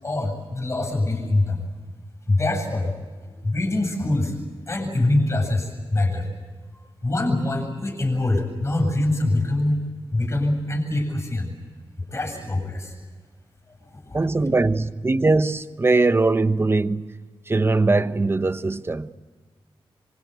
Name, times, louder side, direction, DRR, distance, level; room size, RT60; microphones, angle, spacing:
voice 1, 0.0-1.6 2.3-2.9 3.4-4.3 4.7-6.3 7.0-9.8 10.1-11.5 12.1-12.9 14.0-14.2, left 2 dB, 30° left, 8.0 m, -24 dB
voice 2, 14.1-17.2 17.5-19.1, right 3 dB, 25° right, 1.0 m, -21 dB
26.0 x 25.0 x 8.3 m
wide cardioid pair, 110°, 10 cm